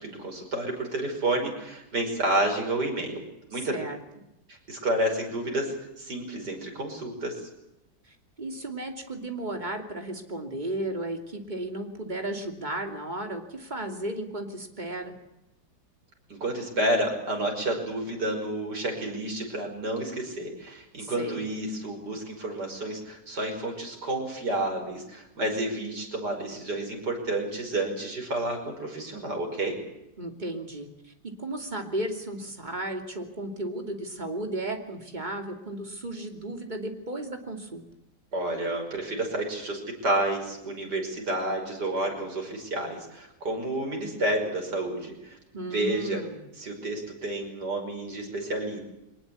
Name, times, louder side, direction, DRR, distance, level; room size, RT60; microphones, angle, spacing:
voice 1, 0.0-3.2 3.5-3.8 4.7-7.3 16.3-29.8 38.3-45.4 45.7-46.2 46.6-48.8, right 1 dB, 85° right, 2 dB, 6.2 m, -30 dB
voice 2, 8.1-15.1 21.0-21.4 30.2-37.8 45.5-46.4, right 1 dB, 25° right, 4 dB, 3.0 m, -34 dB
23.5 x 19.5 x 8.5 m, 0.87 s
omnidirectional pair, 1.8 m